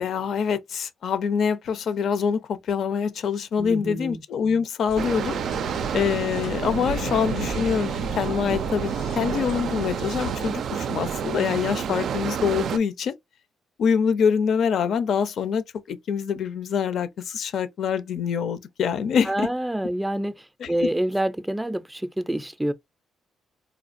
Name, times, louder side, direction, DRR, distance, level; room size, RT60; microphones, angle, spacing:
voice 1, 0.0-5.4 5.9-13.1 13.8-19.5 20.6-20.9, left 7 dB, 65° left, 0.6 m, -25 dB
voice 2, 3.6-4.2 19.3-20.3 20.7-22.7, right 1 dB, 10° right, 0.4 m, -27 dB
sound 1, 4.9-10.5, left 3 dB, 90° left, 1.0 m, -37 dB
sound 2, 5.0-12.8, right 8 dB, 65° right, 0.3 m, -29 dB
4.2 x 2.4 x 2.5 m
cardioid pair, 90°, 0 cm